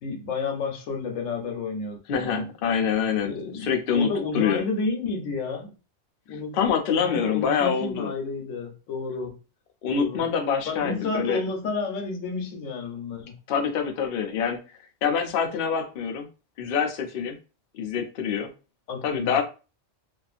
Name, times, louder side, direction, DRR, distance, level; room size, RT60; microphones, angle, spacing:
voice 1, 0.0-2.5 3.2-5.7 6.3-6.6 7.0-9.3 9.9-10.2 10.7-13.3 18.9-19.4, left 3 dB, 85° left, 3 dB, 1.1 m, -31 dB
voice 2, 2.1-4.6 6.5-8.1 9.8-11.4 13.5-14.6 15.0-16.3 16.6-17.4 17.7-18.5 19.0-19.4, left 7 dB, 60° left, 3 dB, 0.6 m, -25 dB
2.6 x 2.3 x 2.4 m, 0.32 s
omnidirectional pair, 1.3 m